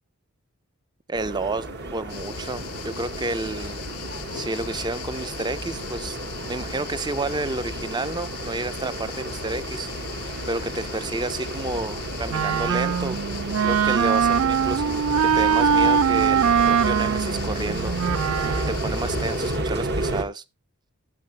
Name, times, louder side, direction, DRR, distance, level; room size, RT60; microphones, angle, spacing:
voice 1, 1.1-3.8 4.3-6.2 6.5-9.9 10.5-13.2 13.6-17.9 18.4-20.4, right 2 dB, 20° right, 0.5 m, -30 dB
sound 1, 1.1-20.2, right 1 dB, 50° right, 1.4 m, -32 dB
sound 2, 2.1-19.6, left 9 dB, 80° left, 0.5 m, -39 dB
Wind instrument woodwind instrument, 12.3-18.9, right 7 dB, 75° right, 0.4 m, -22 dB
15.5 x 7.4 x 2.8 m
head